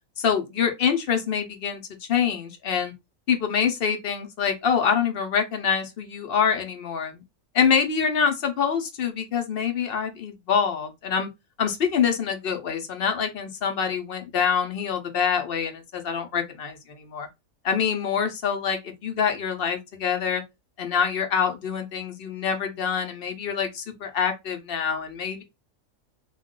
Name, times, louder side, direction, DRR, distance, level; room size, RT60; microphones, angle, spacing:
voice 1, 0.2-2.9 3.3-7.2 7.5-11.3 11.6-17.3 17.6-20.4 20.8-25.4, left 7 dB, 55° left, 0.7 m, -25 dB
2.3 x 2.3 x 3.6 m
omnidirectional pair, 1.5 m